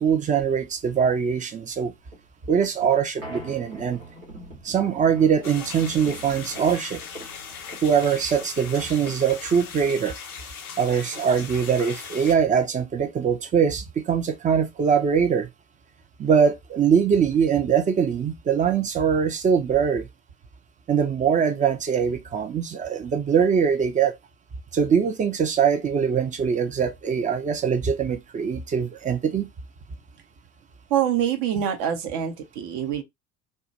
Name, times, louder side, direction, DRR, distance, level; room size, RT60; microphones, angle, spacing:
voice 1, 0.0-1.9 2.5-4.0 4.6-7.0 7.8-10.1 10.8-15.5 16.2-20.1 20.9-24.1 24.7-29.5, right 7 dB, 20° right, 0.4 m, -22 dB
sound 1, 2.0-10.1, right 1 dB, 90° right, 0.9 m, -44 dB
sound 2, 5.4-12.4, left 7 dB, 80° left, 0.5 m, -39 dB
voice 2, 30.9-33.0, right 9 dB, 55° right, 0.7 m, -25 dB
2.2 x 2.1 x 2.7 m
figure-of-eight pair, 55°, 42 cm